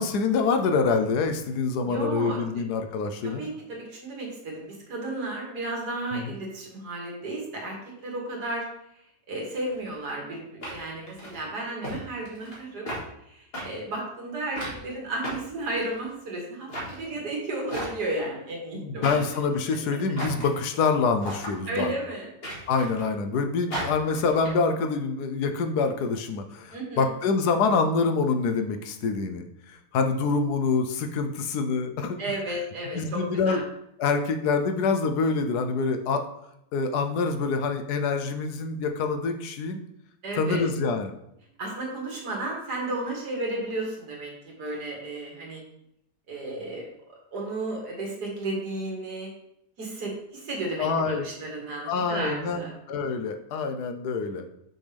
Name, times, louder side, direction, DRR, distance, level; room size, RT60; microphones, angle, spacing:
voice 1, 0.0-3.4 6.1-6.3 18.7-21.9 22.7-32.2 32.9-33.6 34.0-36.2 36.7-39.8 40.3-41.1 50.8-51.3 51.8-54.4, left 4 dB, 85° left, 6 dB, 1.3 m, -26 dB
voice 2, 1.8-2.6 3.2-8.7 9.3-12.9 13.3-19.4 19.9-20.0 21.7-22.3 26.7-27.1 32.2-33.6 40.2-40.7 41.6-45.6 46.3-46.9 47.3-49.3 49.8-52.7, right 2 dB, 80° right, -1 dB, 2.3 m, -33 dB
sound 1, 9.7-9.8 10.6-11.4 11.8-12.0 12.3-12.6 12.9-13.0 13.5-13.6 14.6-14.8 15.2-16.1 16.7-17.0 17.7-18.2 19.0-19.4 20.2-20.5 21.2-21.5 22.4-23.1 23.7-24.5, right 1 dB, 40° left, 2.0 m, -35 dB
6.3 x 5.9 x 3.4 m, 0.79 s
omnidirectional pair, 1.7 m